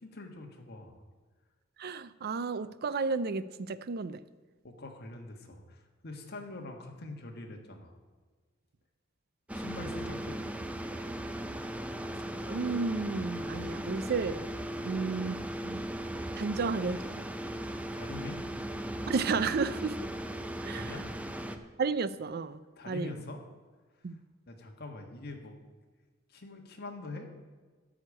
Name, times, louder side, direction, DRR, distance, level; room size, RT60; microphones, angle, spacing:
voice 1, 0.0-1.0 4.6-7.9 9.5-10.4 17.6-18.4 20.7-21.1 22.8-23.4 24.5-25.6 26.3-27.3, left 2 dB, 55° left, 3 dB, 1.5 m, -44 dB
voice 2, 1.8-4.2 12.5-14.5 14.8-15.4 15.6-15.9 16.4-17.3 19.1-20.0 20.6-21.1 21.8-22.6 22.9-23.1 24.0-24.2, right 4 dB, 50° right, 15 dB, 0.5 m, -32 dB
sound 1, 9.5-21.6, right 1 dB, 5° right, 0.6 m, -38 dB
12.5 x 5.1 x 8.3 m, 1.4 s
head